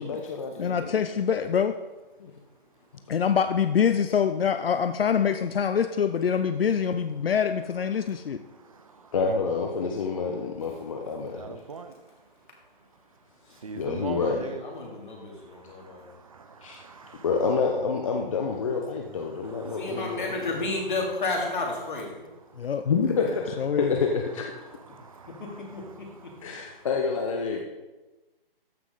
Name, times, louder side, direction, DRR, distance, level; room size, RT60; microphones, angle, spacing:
voice 1, 0.0-0.9 2.2-2.3 9.1-11.6 13.8-14.5 16.6-16.8 17.2-20.6 22.8-24.5 26.4-27.6, left 5 dB, 35° left, 2 dB, 0.8 m, -28 dB
voice 2, 0.6-1.8 3.1-8.4 22.6-22.9 23.6-24.0, left 7 dB, 75° left, 10 dB, 0.6 m, -25 dB
voice 3, 8.5-9.1 11.2-12.0 13.6-14.6 15.7-17.2 19.4-20.5 24.9-25.8 26.3-26.4, right 5 dB, 35° right, 9 dB, 0.6 m, -42 dB
voice 4, 13.8-16.1 19.8-22.3 25.7-25.8, left 2 dB, 55° left, -1 dB, 3.1 m, -32 dB
14.0 x 5.9 x 3.9 m, 1.2 s
hypercardioid pair, 155°, 29 cm